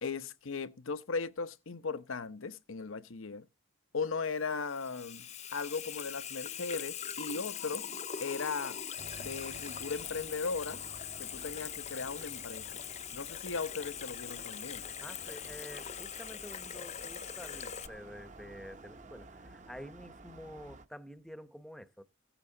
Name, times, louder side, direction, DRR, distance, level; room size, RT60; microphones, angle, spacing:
voice 1, 0.0-3.5 3.9-7.9 8.2-8.8 9.2-10.8 11.2-12.8 13.1-14.9, left 4 dB, 85° left, 0.8 m, -37 dB
Water tap faucet / Sink (filling or washing), 4.2-17.9, left 9 dB, 35° left, 0.6 m, -42 dB
sound 1, 9.0-20.9, right 2 dB, 35° right, 0.9 m, -52 dB
voice 2, 15.0-22.0, equal, ahead, 0.8 m, -49 dB
16.0 x 9.0 x 3.9 m
head